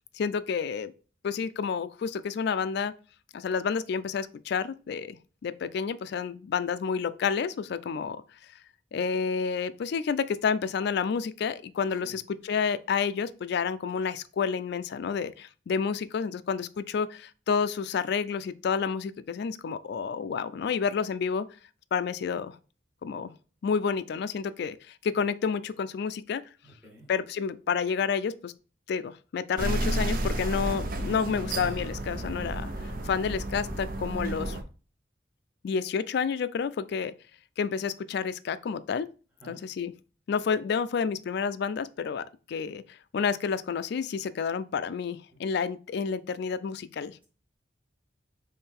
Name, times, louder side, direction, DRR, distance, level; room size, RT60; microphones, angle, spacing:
voice 1, 0.1-0.9 1.2-2.9 3.3-8.2 8.9-21.5 21.9-22.6 23.0-23.3 23.6-26.4 27.1-28.5 28.9-34.6 35.6-37.1 37.6-39.1 39.5-39.9 40.3-47.2, left 6 dB, 65° left, 0.3 m, -30 dB
voice 2, 26.6-27.1 39.4-39.6, equal, 10° right, 1.8 m, -51 dB
sound 1, 29.6-34.6, right 1 dB, 50° right, 0.6 m, -31 dB
3.7 x 3.2 x 4.2 m
head